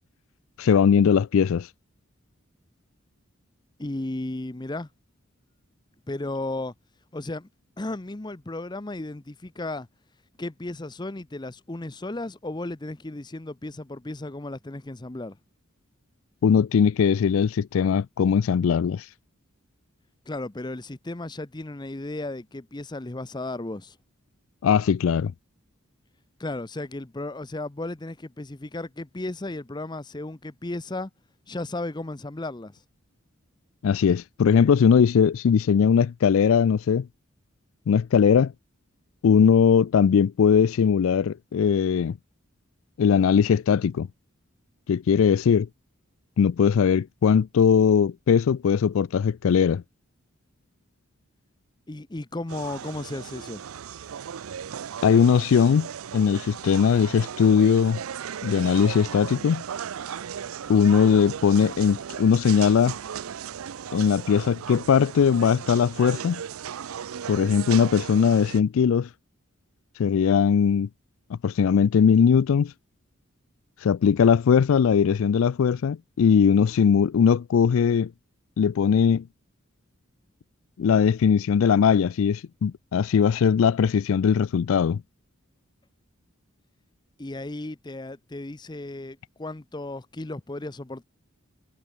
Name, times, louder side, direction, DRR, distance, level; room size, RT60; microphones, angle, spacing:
voice 1, 0.6-1.7 16.4-19.1 24.6-25.3 33.8-37.1 37.9-38.5 39.2-42.2 43.0-44.1 44.9-45.7 46.4-49.8 55.0-58.0 58.4-59.6 60.7-63.0 63.9-66.4 67.3-69.1 70.0-70.9 71.3-72.7 73.8-78.1 78.6-79.3 80.8-85.0, left 7 dB, 70° left, 0.4 m, -20 dB
voice 2, 3.8-4.9 6.1-6.7 7.1-7.5 7.8-9.9 10.4-15.4 20.3-24.0 26.4-31.1 31.5-32.8 51.9-53.6 87.2-91.0, left 2 dB, 20° left, 0.7 m, -34 dB
sound 1, 52.5-68.6, right 8 dB, 80° right, 0.5 m, -36 dB
head